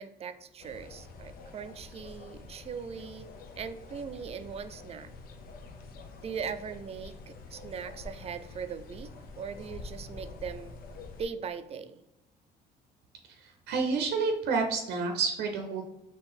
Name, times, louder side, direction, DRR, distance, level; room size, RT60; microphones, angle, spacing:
voice 1, 0.0-3.3 3.6-5.1 6.2-9.1 9.4-10.8 11.2-12.0, right 6 dB, 35° right, 10 dB, 0.4 m, -40 dB
sound 1, 0.6-11.2, left 3 dB, 60° left, 0.7 m, -47 dB
voice 2, 13.3-15.8, right 4 dB, 80° right, 4 dB, 0.6 m, -29 dB
3.8 x 2.9 x 4.2 m, 0.90 s
cardioid pair, 110°, 17 cm